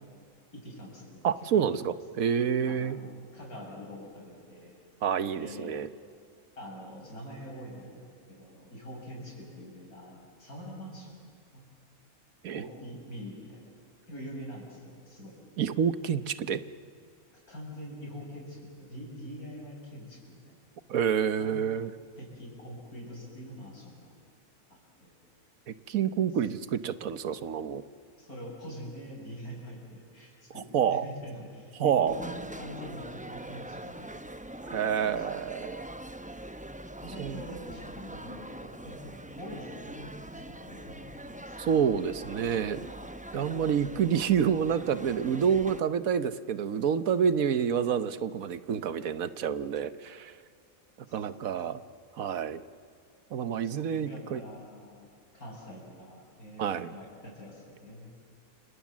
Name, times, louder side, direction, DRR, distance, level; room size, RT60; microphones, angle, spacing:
voice 1, 0.5-1.2 1.5-1.7 2.6-4.8 5.4-5.7 6.6-8.0 8.3-11.1 11.5-11.6 12.5-13.7 14.1-15.4 17.5-20.6 21.4-21.5 22.2-24.1 24.7-25.1 28.2-34.2 34.8-35.4 37.0-41.6 51.1-51.4 53.6-55.0 55.3-58.1, equal, 80° left, -1 dB, 7.5 m, -44 dB
voice 2, 1.2-3.0 5.0-5.9 12.4-12.6 15.6-16.6 20.9-21.9 25.7-27.8 30.7-31.0 31.8-32.2 34.6-35.8 37.2-37.4 41.6-42.9 43.3-50.3 51.1-51.8 52.2-52.6 53.3-54.4 56.6-56.9, right 8 dB, 70° right, 13 dB, 1.3 m, -28 dB
sound 1, 32.1-45.8, right 1 dB, 10° right, 0.5 m, -43 dB
30.0 x 27.0 x 7.3 m, 2.3 s
omnidirectional pair, 1.5 m